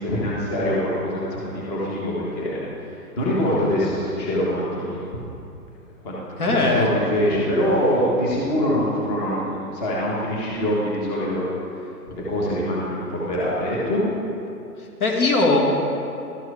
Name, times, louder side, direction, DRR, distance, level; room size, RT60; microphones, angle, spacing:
voice 1, 0.0-5.0 6.0-6.2 6.6-11.5 12.1-14.0, equal, 25° left, -6 dB, 1.4 m, -24 dB
voice 2, 6.4-6.9 15.0-15.6, left 3 dB, 65° left, -1 dB, 2.0 m, -19 dB
13.0 x 4.6 x 5.0 m, 2.7 s
hypercardioid pair, 155°, 48 cm